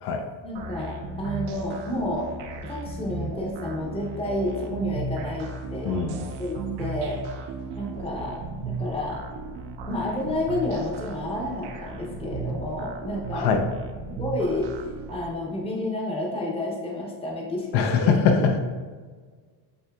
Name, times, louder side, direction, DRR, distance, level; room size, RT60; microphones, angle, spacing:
voice 1, 0.4-2.3 2.6-7.2 7.8-8.4 8.6-9.3 9.9-13.5 14.1-14.7 15.1-18.2, left 1 dB, 15° left, -2 dB, 0.7 m, -30 dB
sound 1, 0.5-15.3, right 3 dB, 70° right, 0.6 m, -35 dB
voice 2, 5.8-6.2 13.3-13.6 17.7-18.6, left 5 dB, 70° left, 5 dB, 0.6 m, -22 dB
7.7 x 2.7 x 2.3 m, 1.5 s
cardioid pair, 160°, 41 cm